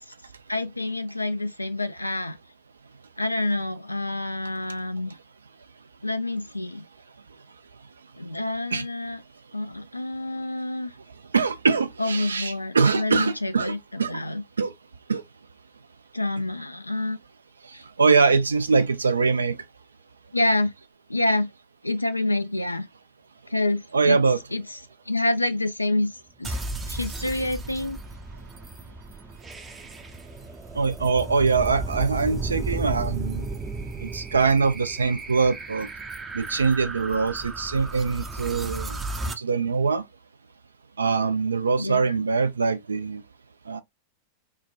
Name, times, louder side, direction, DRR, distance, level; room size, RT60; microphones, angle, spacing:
voice 1, 0.5-2.4 3.2-5.2 6.0-6.8 8.2-9.2 9.5-10.9 12.0-14.4 16.1-17.2 17.7-17.8 20.3-20.7 21.1-21.5 21.8-22.9 23.5-24.2 24.5-24.6 25.1-26.6 26.9-28.0 41.8-42.1, left 2 dB, 85° left, 0.3 m, -27 dB
voice 2, 11.3-14.2 14.6-14.7 15.1-15.2 17.6-19.6 23.9-24.4 30.7-33.5 34.0-35.9 36.3-39.0 39.4-40.0 41.0-43.2 43.7-43.8, right 4 dB, 75° right, 0.4 m, -23 dB
sound 1, 26.4-39.3, right 2 dB, 15° right, 0.5 m, -34 dB
3.2 x 2.1 x 2.3 m
figure-of-eight pair, 90°, 0 cm